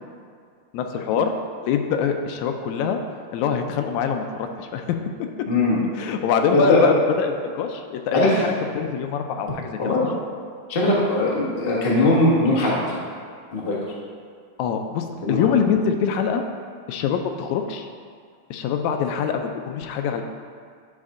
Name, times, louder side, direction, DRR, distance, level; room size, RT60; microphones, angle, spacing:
voice 1, 0.7-1.3 1.6-3.0 3.3-5.0 6.0-10.2 14.6-16.4 16.9-17.9 18.5-20.2, left 7 dB, 80° left, 5 dB, 1.9 m, -24 dB
voice 2, 5.5-5.8 6.5-6.8 8.1-8.4 9.8-10.1 10.7-13.0 13.5-13.8 15.2-15.5, left 2 dB, 55° left, -5 dB, 0.6 m, -20 dB
10.5 x 4.4 x 3.7 m, 2.1 s
omnidirectional pair, 3.3 m